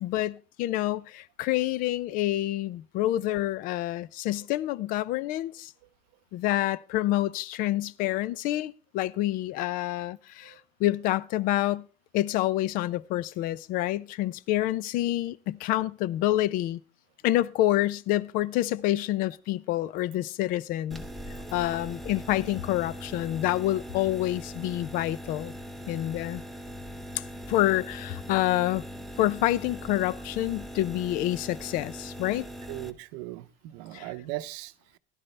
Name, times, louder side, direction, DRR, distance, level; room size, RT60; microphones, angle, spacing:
voice 1, 0.0-5.7 6.3-10.5 10.8-11.8 12.1-16.8 17.2-21.0 21.5-25.5 25.9-26.4 27.5-28.8 29.2-32.5 33.9-34.1, left 15 dB, 55° left, 0.5 m, -27 dB
sound 1, 20.9-32.9, equal, ahead, 0.7 m, -41 dB
voice 2, 32.7-35.0, right 17 dB, 75° right, 0.7 m, -39 dB
16.0 x 11.5 x 3.3 m
cardioid pair, 150°, 17 cm